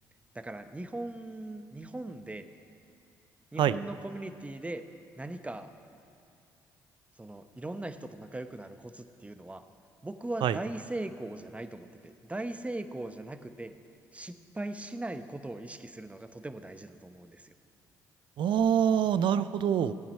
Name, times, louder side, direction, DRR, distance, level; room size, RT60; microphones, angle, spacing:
voice 1, 0.3-2.4 3.5-4.8 5.2-5.7 7.2-9.6 10.0-13.7 14.1-17.5, right 2 dB, 15° right, 10 dB, 0.8 m, -39 dB
voice 2, 18.4-19.9, right 9 dB, 65° right, 15 dB, 0.4 m, -25 dB
15.0 x 8.6 x 5.4 m, 2.6 s
hypercardioid pair, 55°, 9 cm